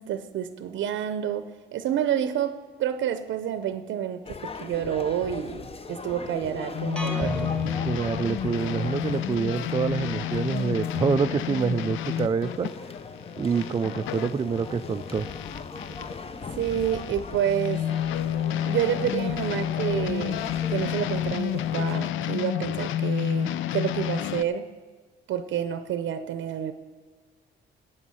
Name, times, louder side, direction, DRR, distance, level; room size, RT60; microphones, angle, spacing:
voice 1, 0.0-7.5 16.6-17.8 18.7-20.4 20.7-24.7 25.3-26.7, right 9 dB, 75° right, 10 dB, 0.6 m, -29 dB
sound 1, 4.2-22.1, left 4 dB, 30° left, 0.7 m, -39 dB
sound 2, 6.7-16.2 16.6-24.4, left 11 dB, 80° left, 0.4 m, -30 dB
sound 3, 7.0-9.0, equal, 5° left, 1.4 m, -34 dB
voice 2, 7.8-12.7 13.4-15.3, right 5 dB, 25° right, 9 dB, 0.3 m, -26 dB
14.5 x 8.8 x 5.6 m, 1.5 s
cardioid pair, 90°, 20 cm